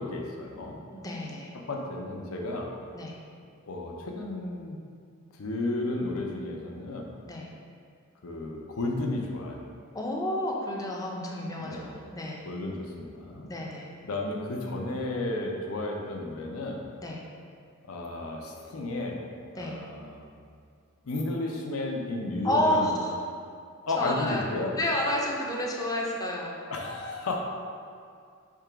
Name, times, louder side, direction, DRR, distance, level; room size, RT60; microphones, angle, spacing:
voice 1, 0.0-0.8 1.5-2.7 3.7-4.8 5.4-7.1 8.2-9.6 11.6-11.9 12.5-13.5 14.0-16.8 17.8-19.2 19.5-20.2 21.0-22.9 23.9-24.7 26.7-27.4, left 2 dB, 75° left, 0 dB, 0.6 m, -33 dB
voice 2, 0.9-1.5 2.9-3.1 7.3-7.5 9.9-12.4 13.5-13.9 17.0-17.2 19.6-19.7 22.4-23.2 24.0-24.5 24.8-26.5, left 1 dB, 15° left, -2 dB, 0.5 m, -30 dB
3.6 x 2.9 x 4.6 m, 2.2 s
head